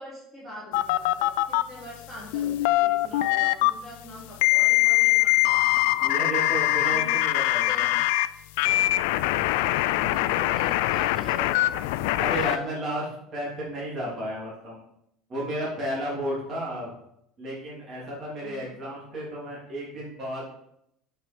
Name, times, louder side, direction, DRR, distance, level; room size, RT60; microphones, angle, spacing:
voice 1, 0.0-5.8 6.9-8.0 9.2-11.7 18.4-18.7, left 1 dB, 5° right, -8 dB, 3.3 m, -43 dB
sound 1, 0.7-1.6 2.3-3.7 4.4-8.3 8.6-12.6, left 17 dB, 80° left, 0.3 m, -23 dB
voice 2, 6.0-8.0 8.6-8.7 12.2-14.8 15.3-16.9 17.4-20.5, equal, 30° right, -6 dB, 3.0 m, -33 dB
7.6 x 5.6 x 5.3 m, 0.76 s
cardioid pair, 170°, 0 cm